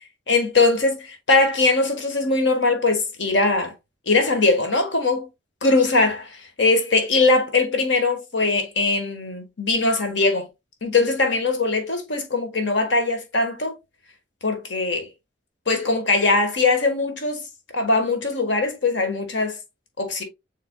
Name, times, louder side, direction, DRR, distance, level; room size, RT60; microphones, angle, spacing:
voice 1, 0.3-3.7 4.1-5.3 5.6-10.5 10.8-13.7 14.4-15.1 15.7-17.4 17.7-19.6 20.0-20.2, left 3 dB, 70° left, 1.3 m, -21 dB
6.5 x 3.3 x 2.2 m
head